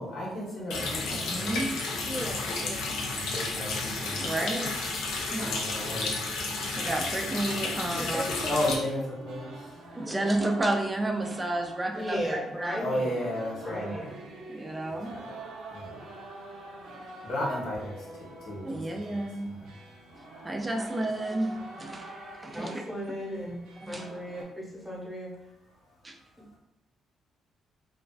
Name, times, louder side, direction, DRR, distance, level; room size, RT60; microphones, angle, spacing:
voice 1, 0.0-1.6 2.8-4.3 5.4-6.2 8.5-9.5 12.8-14.0 14.9-15.2 15.7-16.1 17.2-19.7, left 1 dB, 70° left, -4 dB, 0.9 m, -34 dB
Water tap faucet, 0.7-8.7, left 3 dB, 90° left, 0.4 m, -32 dB
voice 2, 1.1-1.7 3.6-3.7 4.2-4.8 5.3-5.5 6.7-8.2 9.9-12.8 14.5-15.2 18.6-19.5 20.4-22.8 23.8-24.1 26.0-26.1, right 1 dB, 20° right, 3 dB, 0.3 m, -31 dB
voice 3, 2.1-2.9 8.0-9.0 10.0-10.3 11.9-13.2 13.6-14.2 22.5-23.6 23.9-25.3, equal, ahead, -5 dB, 0.9 m, -36 dB
sound 1, 6.8-24.4, right 2 dB, 85° right, 0.5 m, -46 dB
2.4 x 2.3 x 2.3 m, 0.86 s
cardioid pair, 90°, 0 cm